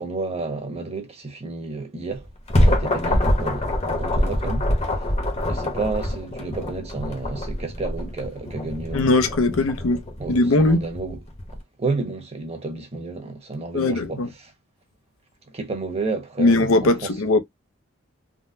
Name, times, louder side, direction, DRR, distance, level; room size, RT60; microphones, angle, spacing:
voice 1, 0.0-2.3 2.6-5.1 5.4-9.1 10.2-11.2 11.8-14.5 15.5-17.1, right 3 dB, 30° right, 1.0 m, -31 dB
sound 1, 2.1-11.6, left 1 dB, 30° left, 0.9 m, -25 dB
voice 2, 8.9-10.9 13.7-14.3 16.4-17.4, left 2 dB, 75° left, 0.6 m, -20 dB
3.7 x 2.1 x 2.6 m
head